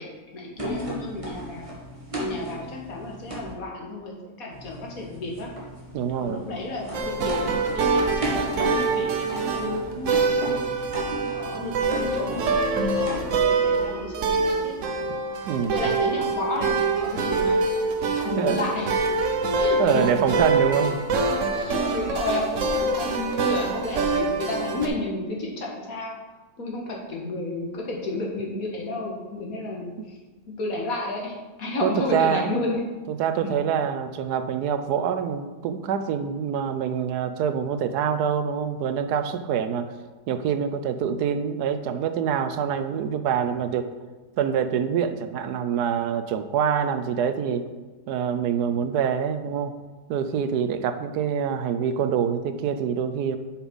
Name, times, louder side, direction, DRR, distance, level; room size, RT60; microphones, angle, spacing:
voice 1, 0.0-1.7 2.2-5.5 6.2-10.3 11.0-15.0 15.7-17.7 18.0-18.9 19.6-20.2 21.5-26.2 26.6-30.2 30.6-32.8 33.4-33.6, left 2 dB, 65° left, -2 dB, 2.0 m, -32 dB
sound 1, 0.6-3.5 4.5-13.5, equal, 20° right, 1.9 m, -35 dB
voice 2, 5.9-6.4 15.5-15.8 18.4-18.6 19.8-21.0 30.0-30.1 31.8-32.6 33.1-39.9 40.3-43.9 44.4-47.7 48.1-49.7 50.1-53.4, right 7 dB, 90° right, 10 dB, 1.2 m, -25 dB
sound 2, 6.9-24.9, right 3 dB, 55° right, 1.1 m, -25 dB
6.9 x 5.8 x 5.4 m, 1.2 s
omnidirectional pair, 1.7 m